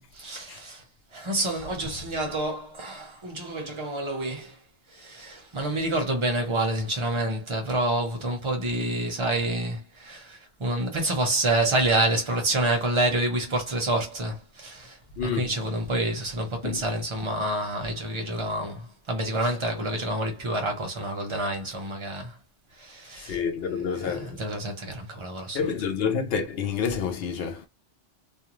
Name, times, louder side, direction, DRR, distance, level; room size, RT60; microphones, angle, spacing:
voice 1, 0.1-0.8 1.1-4.6 4.9-22.4 22.8-23.4 23.9-25.7, right 1 dB, 30° right, 0.7 m, -28 dB
voice 2, 15.2-15.6 16.6-16.8 23.2-24.4 25.5-27.7, left 6 dB, 60° left, 0.7 m, -28 dB
2.4 x 2.3 x 3.0 m
omnidirectional pair, 1.3 m